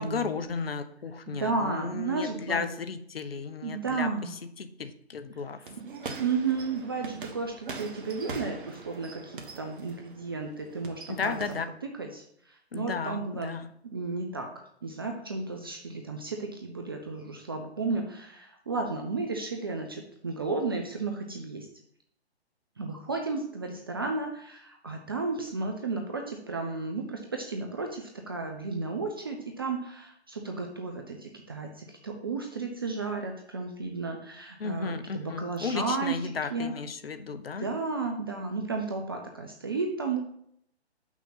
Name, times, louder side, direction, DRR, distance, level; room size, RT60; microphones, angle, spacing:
voice 1, 0.0-4.1 4.6-5.6 11.2-11.7 12.7-13.7 34.6-37.7, left 5 dB, 60° left, 10 dB, 0.8 m, -34 dB
voice 2, 1.3-2.7 3.6-4.4 5.8-5.9 6.2-11.4 11.8-13.5 13.8-14.5 14.8-21.7 22.8-36.7 37.6-40.2, right 4 dB, 20° right, 3 dB, 0.4 m, -33 dB
sound 1, 5.6-11.7, right 4 dB, 50° right, 1.2 m, -42 dB
7.3 x 5.9 x 4.0 m, 0.69 s
figure-of-eight pair, 140°, 33 cm